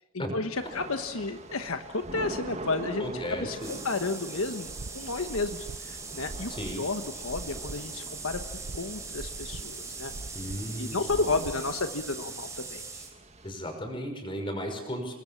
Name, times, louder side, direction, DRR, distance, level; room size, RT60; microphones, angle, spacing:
voice 1, 0.1-8.4 8.7-10.1 10.8-13.0, left 3 dB, 70° left, 7 dB, 1.3 m, -32 dB
Thunder / Rain, 0.5-13.5, right 2 dB, 30° right, 1.8 m, -44 dB
voice 2, 3.0-3.7 6.5-6.8 10.3-11.5 13.4-15.1, equal, 20° left, 4 dB, 5.8 m, -35 dB
sound 1, 3.6-13.1, right 4 dB, 15° right, 3.9 m, -41 dB
sound 2, 4.6-12.1, right 2 dB, 90° right, 0.9 m, -43 dB
29.0 x 21.5 x 7.3 m, 0.90 s
head